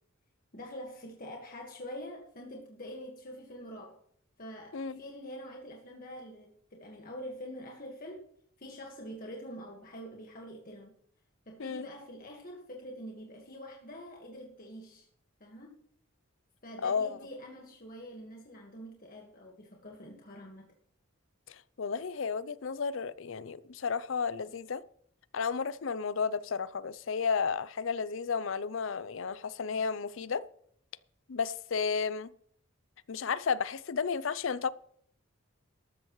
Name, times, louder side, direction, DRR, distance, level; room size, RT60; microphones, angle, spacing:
voice 1, 0.5-4.0 4.4-8.3 8.6-10.9 11.5-15.1 15.4-15.8 16.6-20.7, equal, 45° left, 1.7 m, -45 dB
voice 2, 16.8-17.2 21.5-24.8 25.3-30.5 31.3-32.3 33.1-34.7, left 5 dB, 70° left, 0.5 m, -32 dB
13.0 x 13.0 x 3.2 m
head